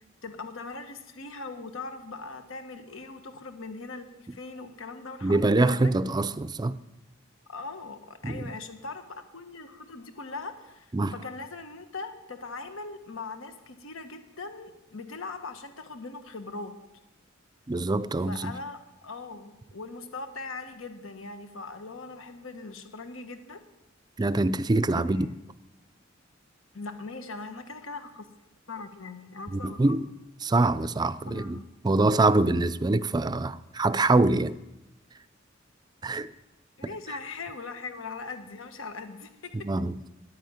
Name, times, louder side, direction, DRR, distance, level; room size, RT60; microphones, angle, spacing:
voice 1, 0.2-5.9 7.5-16.7 18.3-23.6 24.9-25.3 26.7-28.3 28.7-30.0 31.3-31.6 36.8-39.5, left 3 dB, 85° left, 1.2 m, -40 dB
voice 2, 5.2-6.8 8.2-8.5 10.9-11.1 17.7-18.5 24.2-25.3 29.5-30.1 30.4-31.6 31.8-34.6 36.0-36.3 39.5-40.1, right 2 dB, 20° right, 0.4 m, -24 dB
10.0 x 9.6 x 9.5 m
head